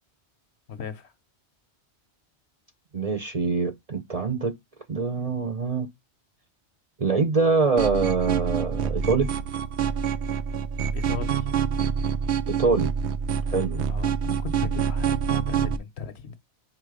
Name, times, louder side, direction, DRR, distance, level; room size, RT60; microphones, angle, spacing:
voice 1, 0.7-1.1 10.9-11.5 13.9-16.4, left 6 dB, 70° left, 1.1 m, -37 dB
voice 2, 2.9-4.5 4.9-5.9 7.0-9.3 12.5-12.9 13.5-13.9, right 4 dB, 40° right, 0.6 m, -24 dB
sound 1, 7.8-15.8, right 7 dB, 75° right, 0.9 m, -26 dB
4.8 x 4.6 x 4.8 m
omnidirectional pair, 1.2 m